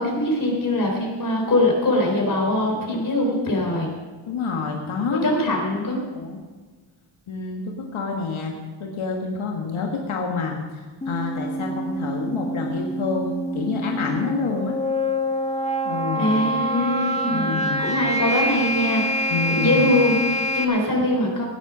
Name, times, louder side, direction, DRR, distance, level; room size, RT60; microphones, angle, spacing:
voice 1, 0.0-3.9 5.1-6.0 16.1-21.4, left 1 dB, 40° left, 0 dB, 3.8 m, -22 dB
voice 2, 4.3-5.3 5.8-6.4 7.3-14.8 15.8-16.3 17.2-17.9 19.3-19.8, left 4 dB, 85° left, 0 dB, 1.7 m, -28 dB
sound 1, 11.0-20.6, equal, 15° left, 1.5 m, -26 dB
16.0 x 10.0 x 6.1 m, 1.4 s
wide cardioid pair, 145°, 47 cm